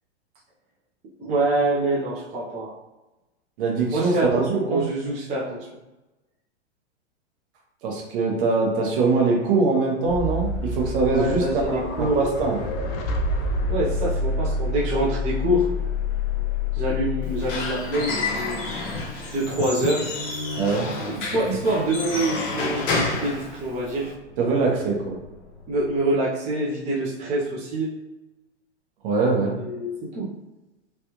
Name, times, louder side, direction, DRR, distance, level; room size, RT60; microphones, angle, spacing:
voice 1, 1.2-2.7 3.9-5.7 11.0-12.2 13.7-15.6 16.7-18.6 19.3-20.1 21.0-24.1 25.7-27.9 29.5-30.3, right 1 dB, 20° right, -7 dB, 0.6 m, -25 dB
voice 2, 3.6-4.9 7.8-12.6 20.6-20.9 24.4-25.2 29.0-29.6, right 3 dB, 50° right, 0 dB, 1.0 m, -23 dB
sound 1, 10.0-26.0, left 3 dB, 35° left, 0.4 m, -30 dB
Squeak / Wood, 17.2-24.1, left 3 dB, 50° left, 0.9 m, -30 dB
3.2 x 2.4 x 2.9 m, 1.1 s
hypercardioid pair, 130°, 36 cm